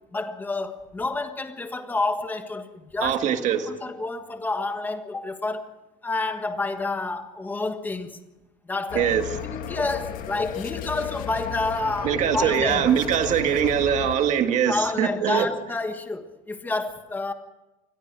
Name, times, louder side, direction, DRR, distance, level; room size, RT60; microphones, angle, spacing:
voice 1, 0.1-3.2 3.8-5.7 6.0-8.2 8.6-9.1 9.4-12.9 14.7-17.3, left 3 dB, 10° left, 1.5 m, -29 dB
voice 2, 3.0-3.8 8.9-9.4 12.0-15.5, right 9 dB, 40° right, 1.8 m, -22 dB
sound 1, 8.9-14.2, left 10 dB, 45° left, 1.9 m, -34 dB
27.0 x 21.5 x 4.7 m
cardioid pair, 175°, 20 cm